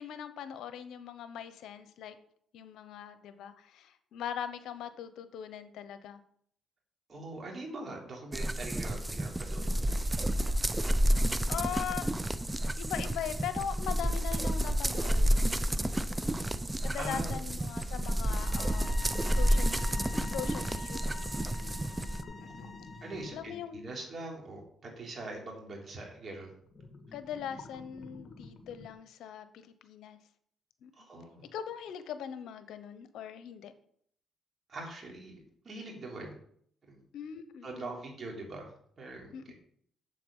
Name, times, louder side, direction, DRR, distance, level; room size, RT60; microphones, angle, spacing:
voice 1, 0.0-2.1 2.5-6.2 11.5-12.1 12.8-15.6 16.8-20.0 20.3-21.3 22.4-22.9 23.3-23.8 27.1-30.2 30.8-30.9 31.5-33.7 37.1-38.0 39.3-39.5, left 9 dB, 80° left, 11 dB, 0.9 m, -41 dB
voice 2, 7.1-9.9 16.9-17.4 22.4-26.5 31.0-31.5 34.7-36.4 36.9-37.0 37.6-39.5, right 2 dB, 45° right, 0 dB, 3.4 m, -43 dB
sound 1, 8.3-22.2, right 1 dB, 15° right, 0.5 m, -30 dB
sound 2, 17.9-23.6 26.5-28.9, left 2 dB, 50° left, 1.6 m, -49 dB
sound 3, 18.3-23.4, left 3 dB, 30° left, 1.0 m, -47 dB
7.6 x 7.5 x 5.5 m, 0.65 s
cardioid pair, 90°, 0 cm